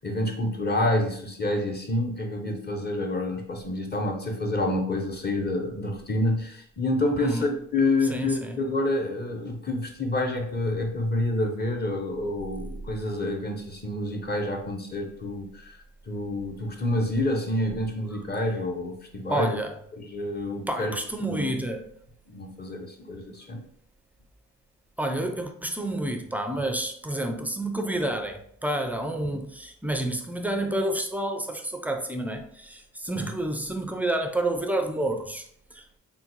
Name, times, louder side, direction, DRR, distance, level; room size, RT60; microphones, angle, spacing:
voice 1, 0.0-15.8 16.1-19.6 19.9-20.9 21.3-21.4 22.3-23.6 29.3-29.4 33.1-33.3, left 1 dB, 25° left, 0.7 m, -28 dB
voice 2, 8.1-8.6 18.1-18.2 19.3-19.8 20.7-21.9 25.0-35.5 35.7-35.9, right 1 dB, 5° right, 0.4 m, -29 dB
3.6 x 2.2 x 2.9 m
supercardioid pair, 60°, 40 cm